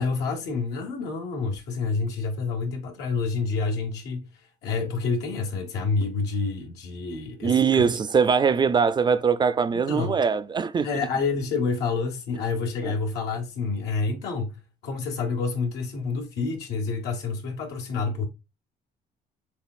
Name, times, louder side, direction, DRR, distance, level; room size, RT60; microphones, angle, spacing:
voice 1, 0.0-4.2 4.6-7.9 9.7-10.1 10.8-14.5 14.8-18.3, left 4 dB, 85° left, 1.6 m, -28 dB
voice 2, 7.4-10.9 12.8-12.9, right 6 dB, 25° right, 0.4 m, -22 dB
6.9 x 2.3 x 2.4 m
cardioid pair, 110°, 17 cm